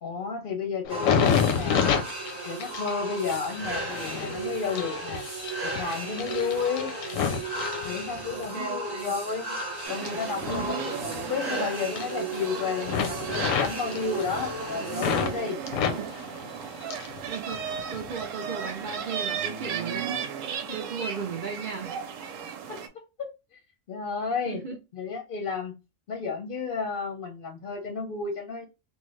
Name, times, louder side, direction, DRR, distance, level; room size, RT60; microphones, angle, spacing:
voice 1, 0.0-1.8 2.5-5.2 5.6-6.9 7.8-9.6 9.9-15.6 20.7-20.8 22.7-23.0 23.5-23.6 23.9-24.6 24.9-25.7 26.1-28.7, left 5 dB, 55° left, 0.7 m, -32 dB
sound 1, 0.8-8.5 9.0-11.6 11.8-12.5 12.8-15.3 15.7-17.2 17.5-18.2 18.8-19.0, left 7 dB, 85° left, 1.0 m, -30 dB
sound 2, 0.9-15.5, right 2 dB, 25° right, 0.7 m, -35 dB
voice 2, 8.3-9.2 10.4-10.8 15.9-16.1 16.9-20.1 20.7-22.0 24.5-24.8, right 6 dB, 65° right, 0.5 m, -37 dB
sound 3, 9.8-22.9, right 7 dB, 85° right, 0.9 m, -35 dB
3.1 x 2.1 x 3.1 m
omnidirectional pair, 1.3 m